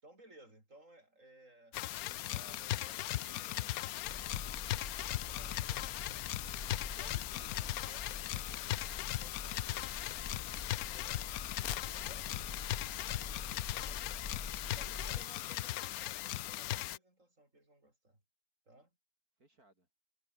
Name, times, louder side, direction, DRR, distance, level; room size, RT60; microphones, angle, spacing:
voice 1, 0.0-1.8 2.1-3.9 5.2-6.0 6.9-11.3 11.9-12.3 13.9-14.0 14.8-18.2 18.7-18.9, right 1 dB, 50° right, 8.0 m, -60 dB
sound 1, 1.7-17.0, left 15 dB, 70° left, 1.0 m, -38 dB
sound 2, 4.0-15.2, left 4 dB, 30° left, 1.8 m, -47 dB
voice 2, 12.7-15.3 19.4-19.9, right 2 dB, 70° right, 6.6 m, -64 dB
omnidirectional pair, 1.7 m